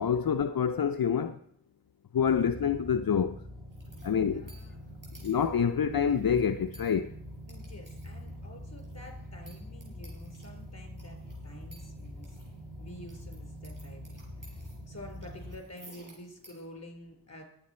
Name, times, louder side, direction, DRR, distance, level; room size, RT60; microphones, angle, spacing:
voice 1, 0.0-1.3 2.1-3.3 4.0-4.5 5.2-7.1, left 7 dB, 80° left, 0.5 m, -27 dB
sound 1, 2.1-15.6, equal, ahead, 4.3 m, -45 dB
sound 2, 3.7-16.6, right 1 dB, 65° right, 5.4 m, -58 dB
voice 2, 4.0-5.0 7.4-12.4 12.8-17.5, left 1 dB, 45° left, 3.8 m, -49 dB
20.0 x 8.3 x 4.3 m
wide cardioid pair, 45°, 35 cm